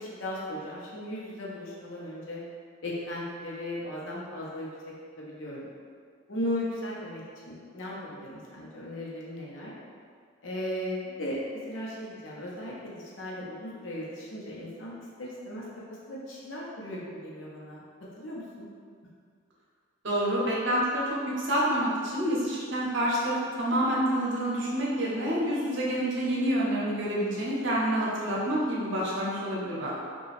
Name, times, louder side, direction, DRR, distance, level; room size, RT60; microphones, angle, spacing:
voice 1, 0.0-2.4 2.8-5.7 6.3-9.7 10.4-14.9 15.2-15.7 16.1-17.8 18.2-18.7, left 1 dB, 75° left, -5 dB, 0.7 m, -37 dB
voice 2, 20.0-29.9, equal, 65° right, -6 dB, 0.7 m, -28 dB
2.8 x 2.3 x 3.0 m, 2.1 s
head